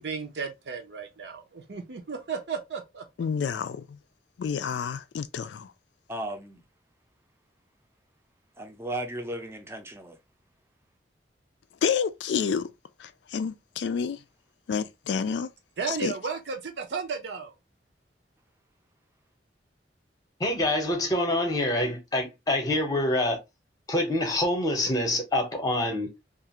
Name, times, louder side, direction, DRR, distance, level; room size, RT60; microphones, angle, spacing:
voice 1, 0.0-3.0 15.8-17.5, right 5 dB, 70° right, 0.6 m, -34 dB
voice 2, 3.2-4.0 4.4-5.7 11.8-12.7 13.0-14.2 14.7-15.5 15.9-16.1, left 6 dB, 75° left, 0.3 m, -29 dB
voice 3, 6.1-6.6 8.6-10.2, right 1 dB, 15° right, 0.5 m, -35 dB
voice 4, 20.4-23.4 23.9-26.1, left 1 dB, 20° left, 0.8 m, -26 dB
2.5 x 2.4 x 2.8 m
head